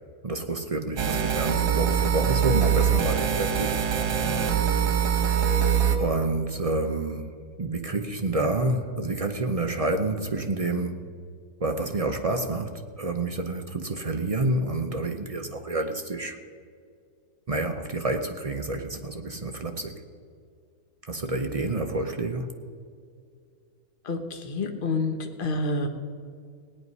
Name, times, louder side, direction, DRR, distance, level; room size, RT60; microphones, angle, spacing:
voice 1, 0.2-3.7 5.9-11.0 11.6-16.4 17.5-20.0 21.0-22.5, right 2 dB, 40° right, 5 dB, 0.5 m, -28 dB
sound 1, 1.0-6.0, right 8 dB, 85° right, 1.6 m, -23 dB
voice 2, 24.0-25.9, left 2 dB, 35° left, 5 dB, 1.2 m, -28 dB
17.5 x 9.6 x 5.4 m, 2.2 s
omnidirectional pair, 1.7 m